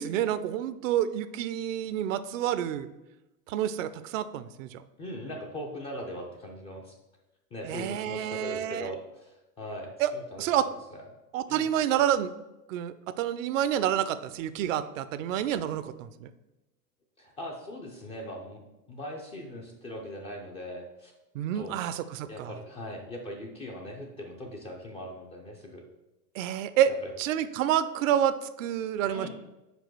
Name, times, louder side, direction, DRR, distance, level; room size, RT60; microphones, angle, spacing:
voice 1, 0.0-2.9 3.5-4.8 7.7-8.9 10.0-10.1 10.4-10.7 11.3-12.3 12.7-16.3 21.3-22.5 26.3-26.9 27.2-29.3, right 10 dB, 55° right, 13 dB, 0.5 m, -28 dB
voice 2, 5.0-7.0 7.5-10.5 10.9-11.0 11.5-11.7 17.2-18.6 18.9-21.1 21.5-21.8 22.3-25.8 26.9-27.1 29.1-29.3, equal, 15° left, 0 dB, 0.4 m, -40 dB
5.2 x 4.5 x 5.9 m, 1.0 s
hypercardioid pair, 120°, 48 cm